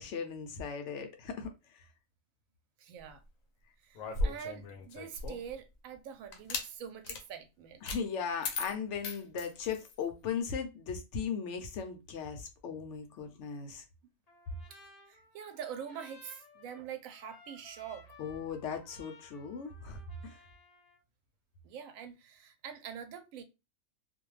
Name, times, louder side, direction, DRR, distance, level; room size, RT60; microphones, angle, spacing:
voice 1, 0.0-1.9 7.8-13.8 18.2-20.4, left 6 dB, 70° left, 0.9 m, -38 dB
voice 2, 2.8-3.2 3.8-7.9 14.7-14.8 15.0-18.1 21.6-23.4, right 8 dB, 85° right, 1.0 m, -45 dB
sound 1, 3.9-5.5 6.3-6.7 7.0-7.2 7.9-8.0 8.4-10.0, left 3 dB, 90° left, 1.1 m, -36 dB
Trumpet, 14.3-21.0, left 3 dB, 40° left, 0.7 m, -58 dB
2.5 x 2.1 x 3.1 m
omnidirectional pair, 1.4 m